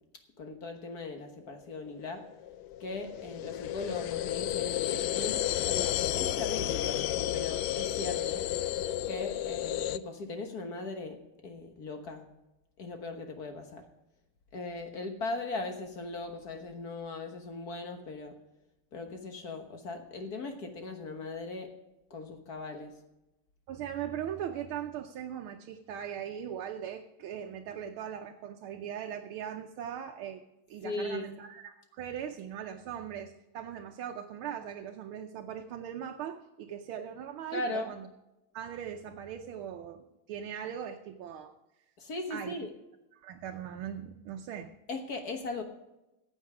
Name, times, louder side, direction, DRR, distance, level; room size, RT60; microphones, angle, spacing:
voice 1, 0.4-2.2 2.8-5.4 5.7-8.4 9.1-11.2 11.4-12.3 12.8-13.8 14.5-18.3 18.9-21.7 22.1-22.9 30.8-31.2 37.5-37.9 42.0-42.7 44.9-45.6, left 3 dB, 50° left, 5 dB, 1.6 m, -39 dB
sound 1, 2.1-10.0, left 12 dB, 90° left, 0.9 m, -32 dB
voice 2, 23.7-38.1 38.5-41.5 42.3-42.5 43.1-44.7, right 9 dB, 75° right, 4 dB, 1.6 m, -40 dB
15.0 x 8.5 x 4.9 m, 0.94 s
omnidirectional pair, 2.4 m